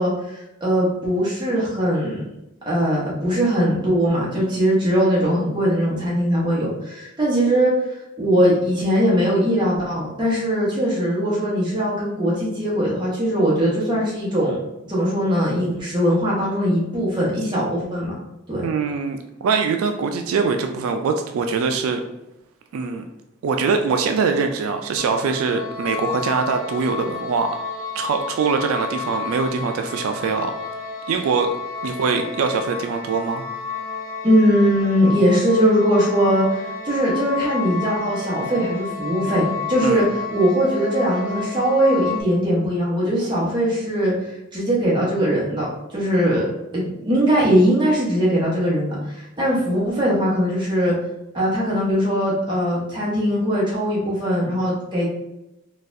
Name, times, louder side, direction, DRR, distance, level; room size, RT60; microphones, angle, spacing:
voice 1, 0.0-2.2 2.7-7.7 8.2-14.6 14.9-18.1 18.5-18.6 34.2-44.1 44.5-45.7 45.9-46.4 46.7-50.9 51.3-55.1, equal, 20° right, -6 dB, 0.9 m, -20 dB
voice 2, 18.6-22.0 22.7-23.1 23.4-27.6 27.9-30.5 31.1-33.4 39.8-40.1, right 5 dB, 85° right, 6 dB, 0.3 m, -23 dB
sound 1, 25.0-42.2, left 5 dB, 65° right, 0.7 m, -31 dB
4.0 x 2.4 x 2.5 m, 0.93 s
head